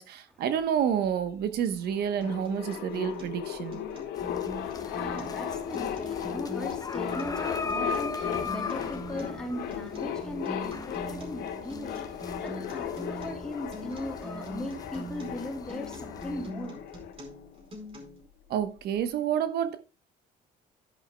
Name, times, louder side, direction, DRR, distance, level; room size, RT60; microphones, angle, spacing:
voice 1, 0.0-3.8 18.5-19.8, right 9 dB, 70° right, 1.0 m, -29 dB
sound 1, 1.6-1.7 1.8-17.8, left 9 dB, 75° left, 1.8 m, -36 dB
Acoustic guitar, 2.2-18.2, right 1 dB, 35° right, 4.5 m, -43 dB
voice 2, 4.0-17.0, left 1 dB, 5° left, 3.3 m, -39 dB
sound 2, 4.2-16.5, left 3 dB, 20° left, 1.1 m, -40 dB
11.0 x 11.0 x 2.2 m
cardioid pair, 110°, 17 cm